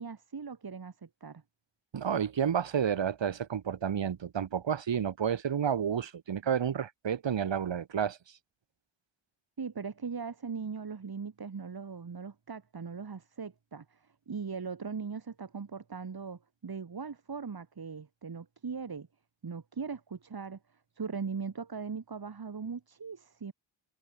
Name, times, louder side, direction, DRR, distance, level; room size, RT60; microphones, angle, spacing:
voice 1, 0.0-1.4 9.6-19.1 19.4-20.6 21.0-23.5, right 5 dB, 45° right, 2.0 m, -39 dB
voice 2, 1.9-8.2, right 8 dB, 65° right, 1.3 m, -30 dB
cardioid pair, 55°, 49 cm